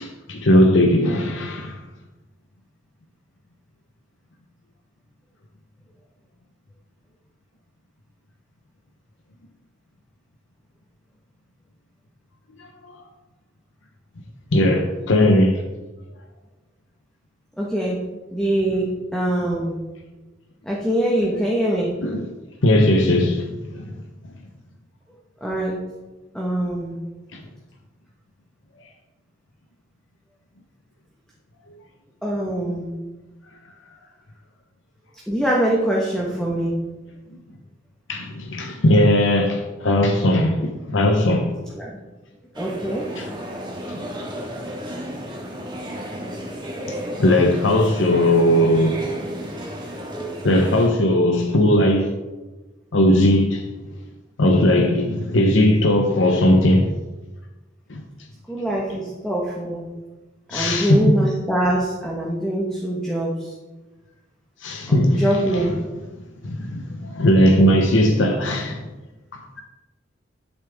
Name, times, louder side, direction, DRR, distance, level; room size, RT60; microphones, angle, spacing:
voice 1, 0.0-1.8 12.6-12.9 14.5-15.6 22.0-22.3 22.6-23.9 27.3-27.4 38.1-41.5 43.2-43.3 43.9-44.0 46.9-49.0 50.4-52.1 52.9-53.7 54.4-56.9 57.9-58.0 60.5-61.2 64.6-65.7 66.4-68.9, left 1 dB, 75° left, 0.8 m, -18 dB
voice 2, 17.6-18.0 18.3-19.8 20.6-22.0 25.4-25.8 26.3-27.0 32.2-32.9 35.3-36.7 41.7-41.9 42.5-43.1 58.5-59.9 60.5-63.5 64.9-65.7, right 1 dB, 5° left, 1.2 m, -23 dB
sound 1, 42.5-50.9, equal, 25° right, 1.7 m, -32 dB
12.0 x 6.9 x 3.5 m
head